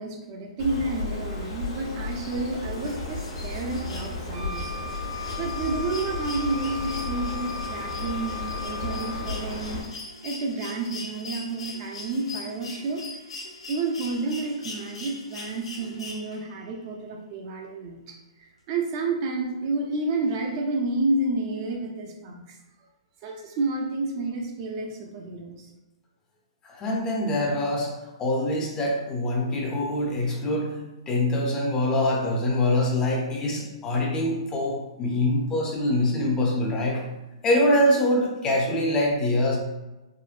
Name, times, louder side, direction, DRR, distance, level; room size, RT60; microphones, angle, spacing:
voice 1, 0.0-4.7 5.4-9.8 10.2-13.0 13.7-22.6 23.2-25.7, right 3 dB, 45° right, 1 dB, 0.5 m, -30 dB
Bird, 0.6-9.8, left 2 dB, 55° left, 0.9 m, -34 dB
sound 1, 2.7-16.6 18.1-18.2, left 3 dB, 80° left, 0.6 m, -42 dB
Wind instrument woodwind instrument, 4.3-9.5, left 5 dB, 80° right, 0.9 m, -37 dB
voice 2, 26.6-27.9 28.2-30.8 31.1-37.0 37.4-39.6, left 1 dB, 20° left, -1 dB, 0.6 m, -24 dB
3.7 x 2.1 x 2.4 m, 1.0 s
hypercardioid pair, 130°, 3 cm